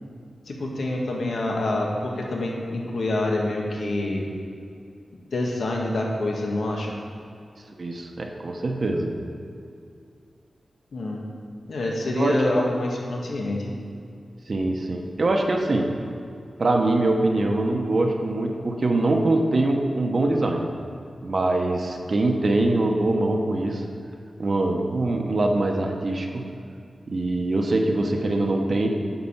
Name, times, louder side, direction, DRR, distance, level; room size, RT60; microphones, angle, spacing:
voice 1, 0.5-4.3 5.3-6.9 10.9-11.2 11.7-13.7, left 2 dB, 75° left, -1 dB, 1.6 m, -26 dB
voice 2, 7.8-9.1 12.1-12.6 14.5-15.9 16.6-20.7 21.2-23.8 24.4-26.4 27.1-28.9, right 2 dB, 50° right, 2 dB, 1.0 m, -23 dB
9.8 x 5.0 x 7.3 m, 2.4 s
wide cardioid pair, 95°, 0 cm